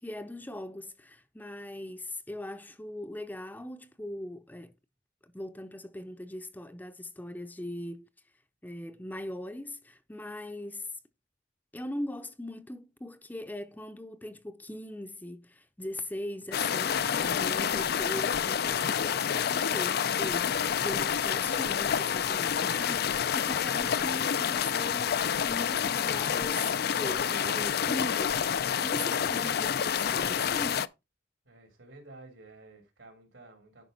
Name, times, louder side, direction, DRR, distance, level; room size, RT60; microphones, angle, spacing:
voice 1, 0.0-4.7 5.2-8.1 8.6-10.9 11.7-25.2 25.5-30.9, left 1 dB, 10° left, 0.6 m, -40 dB
sound 1, 16.5-30.9, left 8 dB, 55° left, 0.4 m, -28 dB
voice 2, 31.5-33.9, right 2 dB, 80° right, 3.6 m, -52 dB
10.5 x 5.2 x 4.0 m
head